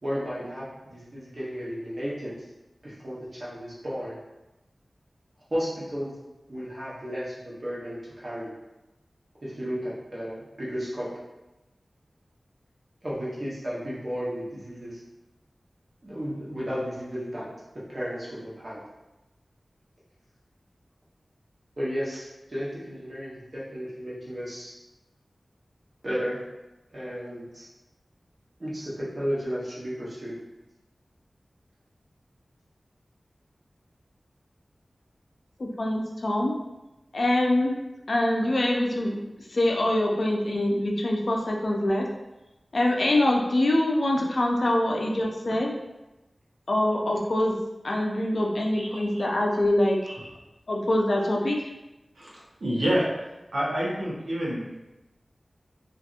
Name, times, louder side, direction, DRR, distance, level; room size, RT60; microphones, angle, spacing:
voice 1, 0.0-2.3 2.8-4.2 5.5-6.1 6.5-8.5 9.4-11.1 13.0-15.0 16.0-17.5 17.9-18.8 21.8-24.8 26.0-26.4 26.9-27.7 28.6-30.4, equal, 50° right, -8 dB, 0.9 m, -33 dB
voice 2, 35.6-36.5 37.1-37.7 38.1-39.2 39.5-42.0 42.7-45.7 46.7-47.5 47.8-50.0 50.7-51.7, left 1 dB, 65° left, 0 dB, 0.4 m, -24 dB
voice 3, 52.6-53.1 53.5-54.8, equal, 80° right, -6 dB, 0.8 m, -27 dB
2.7 x 2.5 x 2.4 m, 1.0 s
wide cardioid pair, 80°, 0 cm